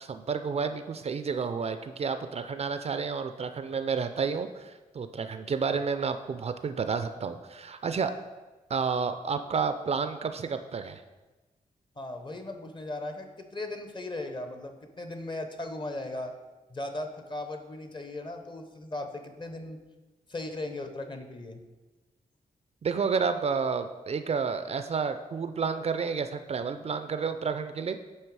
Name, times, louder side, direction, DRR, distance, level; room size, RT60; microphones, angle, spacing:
voice 1, 0.0-8.1 8.7-11.0 22.8-28.0, right 5 dB, 45° right, 9 dB, 0.4 m, -30 dB
voice 2, 12.0-16.3 16.7-19.8 20.3-21.6, left 2 dB, 35° left, 6 dB, 0.8 m, -37 dB
8.8 x 3.2 x 4.6 m, 1.2 s
cardioid pair, 85°, 15 cm